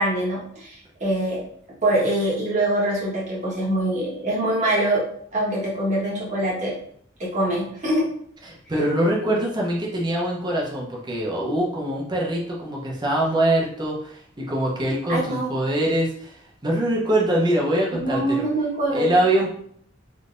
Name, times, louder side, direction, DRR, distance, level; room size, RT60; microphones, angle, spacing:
voice 1, 0.0-1.4 1.8-5.0 5.3-6.7 7.2-8.1 15.1-15.5 17.9-19.1, right 1 dB, 40° right, -6 dB, 1.3 m, -24 dB
voice 2, 8.5-18.4 18.9-19.5, right 1 dB, 25° right, -3 dB, 0.8 m, -23 dB
3.6 x 2.7 x 2.5 m, 0.64 s
head